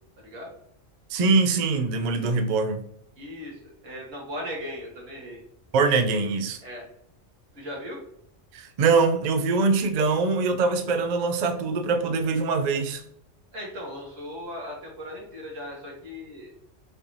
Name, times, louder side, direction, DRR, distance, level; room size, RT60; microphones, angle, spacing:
voice 1, 0.2-0.5 3.2-5.4 6.6-6.8 7.5-8.0 13.5-16.5, equal, 90° right, 1.8 m, -38 dB
voice 2, 1.1-2.8 5.7-6.6 8.5-13.0, right 4 dB, 60° right, 0.4 m, -23 dB
6.4 x 2.6 x 3.1 m
omnidirectional pair, 1.3 m